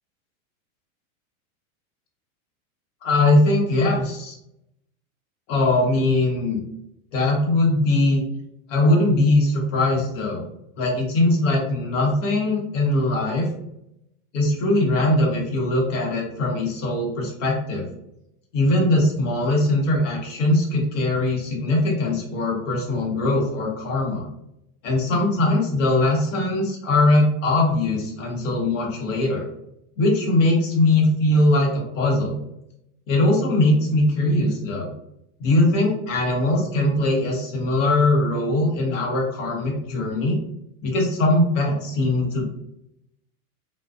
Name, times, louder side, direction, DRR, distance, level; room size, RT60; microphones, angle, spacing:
voice 1, 3.0-4.3 5.5-6.6 7.1-8.2 8.7-10.4 10.8-13.5 14.3-17.9 18.5-24.3 24.8-29.5 30.0-32.3 33.1-34.9 35.4-40.4 40.8-42.4, left 2 dB, 60° left, -1 dB, 1.0 m, -21 dB
2.5 x 2.2 x 2.3 m, 0.81 s
supercardioid pair, 175°, 43 cm